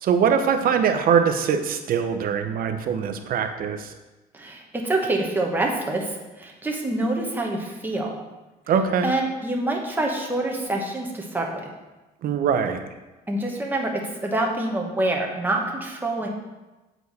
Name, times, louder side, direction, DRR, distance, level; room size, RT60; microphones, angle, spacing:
voice 1, 0.0-3.9 8.7-9.1 12.2-12.8, right 7 dB, 60° right, 7 dB, 0.7 m, -22 dB
voice 2, 4.3-8.2 9.0-11.7 13.3-16.3, right 2 dB, 10° right, 0 dB, 1.2 m, -26 dB
8.0 x 4.6 x 4.1 m, 1.1 s
cardioid pair, 110°, 17 cm